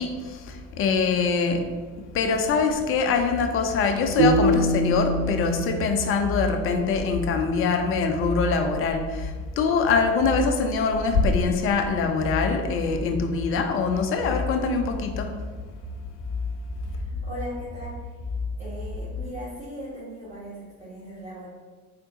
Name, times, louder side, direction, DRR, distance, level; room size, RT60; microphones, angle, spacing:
voice 1, 0.0-1.7 2.1-15.3, left 4 dB, 30° left, 5 dB, 0.4 m, -24 dB
sound 1, 3.2-19.2, left 3 dB, 55° right, 1.3 m, -34 dB
sound 2, 4.2-7.3, right 1 dB, 35° right, 0.5 m, -25 dB
voice 2, 16.9-18.1 18.6-21.5, equal, 15° right, -12 dB, 1.3 m, -38 dB
3.4 x 2.9 x 2.5 m, 1.4 s
figure-of-eight pair, 55°, 45 cm